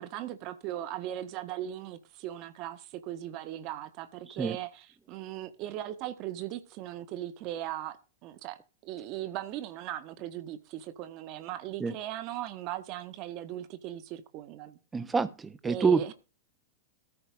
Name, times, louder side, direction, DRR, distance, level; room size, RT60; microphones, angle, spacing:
voice 1, 0.0-8.0 8.2-8.6 8.8-14.8 15.6-16.1, right 13 dB, 45° right, 1.7 m, -38 dB
voice 2, 14.9-16.1, right 5 dB, 15° right, 1.2 m, -27 dB
14.0 x 5.7 x 5.2 m
figure-of-eight pair, 95°, 0 cm